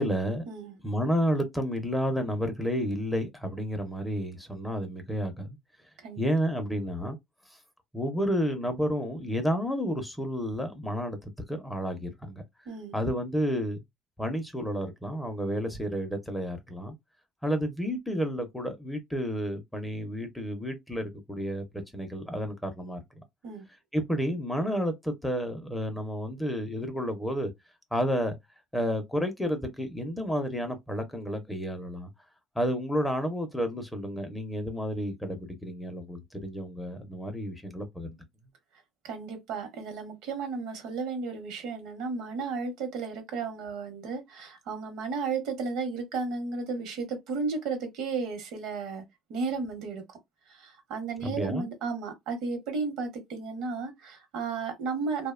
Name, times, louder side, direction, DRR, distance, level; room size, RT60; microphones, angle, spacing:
voice 1, 0.0-0.4 0.8-5.6 6.2-7.2 7.9-12.4 12.9-13.8 14.2-16.9 17.4-23.2 23.9-27.5 27.9-28.4 28.7-32.1 32.6-38.2 51.2-51.7, equal, 5° left, 0.5 m, -31 dB
voice 2, 39.0-49.0 49.3-50.2 50.5-55.3, right 4 dB, 80° right, 0.8 m, -34 dB
2.7 x 2.0 x 2.3 m
cardioid pair, 135°, 0 cm